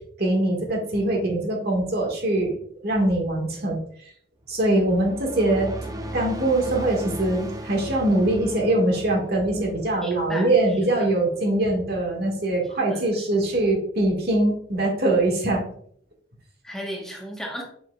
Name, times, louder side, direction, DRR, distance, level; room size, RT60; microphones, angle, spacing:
voice 1, 0.2-2.6 2.8-3.8 4.5-15.6, right 1 dB, 55° right, 0 dB, 1.6 m, -23 dB
sound 1, 4.5-11.1, right 1 dB, 20° right, 0.5 m, -37 dB
voice 2, 10.0-10.8 12.9-13.3 16.6-17.6, equal, 5° left, -2 dB, 1.1 m, -35 dB
7.1 x 5.7 x 2.3 m, 0.63 s
head